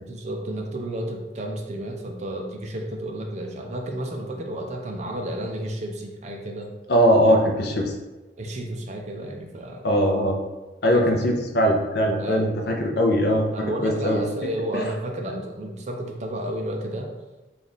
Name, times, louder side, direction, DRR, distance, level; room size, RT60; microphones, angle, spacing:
voice 1, 0.0-6.7 8.4-9.9 10.9-11.2 12.2-12.5 13.5-17.1, right 1 dB, 40° right, 2 dB, 0.5 m, -31 dB
voice 2, 6.9-7.9 9.8-10.4 10.8-13.5 13.8-14.2 14.7-14.8, equal, 60° left, 2 dB, 0.5 m, -20 dB
3.3 x 2.4 x 4.0 m, 1.1 s
head